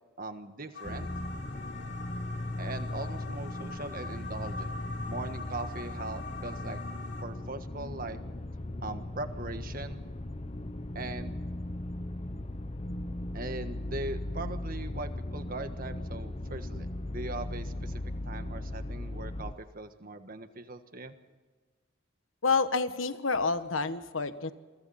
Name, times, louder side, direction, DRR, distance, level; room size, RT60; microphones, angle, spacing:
voice 1, 0.2-1.1 2.6-4.8 5.0-6.8 7.2-8.2 8.8-10.0 10.9-11.4 13.3-21.1, right 2 dB, 45° right, 8 dB, 1.6 m, -40 dB
sound 1, 0.7-7.2, left 3 dB, 60° left, 3.5 m, -44 dB
sound 2, 0.8-19.5, left 1 dB, 30° left, 0.8 m, -38 dB
voice 2, 22.4-24.5, left 4 dB, 90° left, 11 dB, 1.3 m, -28 dB
28.5 x 23.5 x 4.3 m, 1.4 s
head